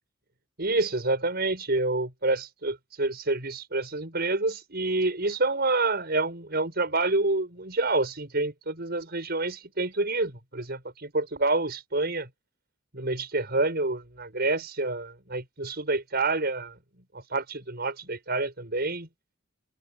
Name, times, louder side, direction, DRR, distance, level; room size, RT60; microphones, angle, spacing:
voice 1, 0.6-12.3 12.9-16.7 17.3-19.1, right 2 dB, 50° right, 6.4 m, -28 dB
head